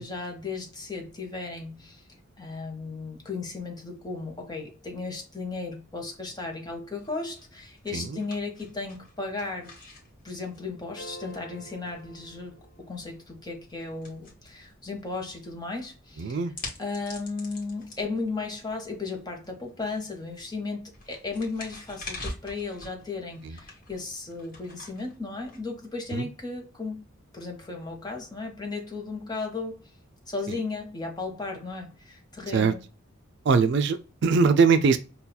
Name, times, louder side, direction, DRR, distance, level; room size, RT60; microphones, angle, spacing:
voice 1, 0.0-2.0 2.4-9.7 10.2-16.4 16.8-27.0 27.3-29.9 30.3-32.8, left 3 dB, 20° left, 0.9 m, -35 dB
sound 1, 7.0-26.2, left 2 dB, 40° left, 1.2 m, -47 dB
voice 2, 7.9-8.2 16.2-16.5 23.4-23.6 26.1-26.3 30.5-30.6 32.5-32.7 33.5-35.0, right 5 dB, 55° right, 0.4 m, -22 dB
sound 2, 11.0-13.2, equal, 90° left, 1.0 m, -47 dB
5.5 x 2.3 x 2.2 m
head